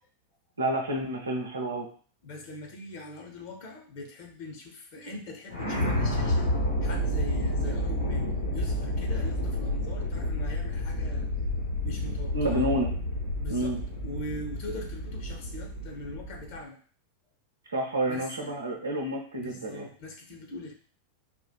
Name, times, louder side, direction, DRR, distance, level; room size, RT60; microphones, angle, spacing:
voice 1, 0.6-1.9 12.3-12.9 13.5-13.8 17.7-19.9, right 1 dB, 75° right, 1 dB, 0.7 m, -29 dB
voice 2, 2.2-6.5 6.8-11.3 11.8-12.6 13.4-13.8 14.0-16.8 18.0-18.6 19.4-20.7, left 2 dB, 45° left, 1 dB, 0.9 m, -41 dB
sound 1, 5.5-16.6, left 1 dB, 80° left, 1.4 m, -30 dB
4.2 x 2.4 x 2.3 m, 0.43 s
figure-of-eight pair, 90°, 0 cm